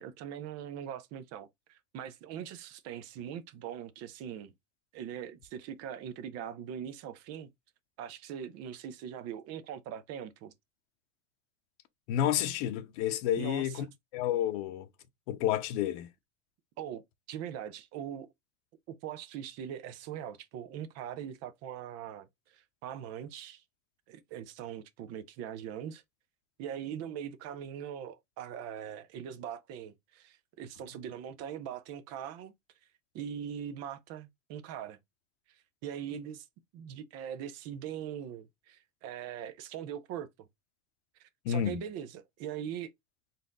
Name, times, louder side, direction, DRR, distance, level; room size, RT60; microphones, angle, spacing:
voice 1, 0.0-4.5 4.9-7.5 8.0-10.5 13.4-13.9 16.8-17.0 17.3-18.3 18.9-23.6 24.1-26.0 26.6-32.5 33.1-35.0 35.5-36.5 36.7-40.5 41.2-42.9, right 9 dB, 45° right, 0.6 m, -41 dB
voice 2, 12.1-13.9 14.1-14.9 15.3-16.1 41.4-41.8, left 11 dB, 70° left, 0.9 m, -30 dB
4.1 x 2.6 x 3.5 m
supercardioid pair, 145°, 35 cm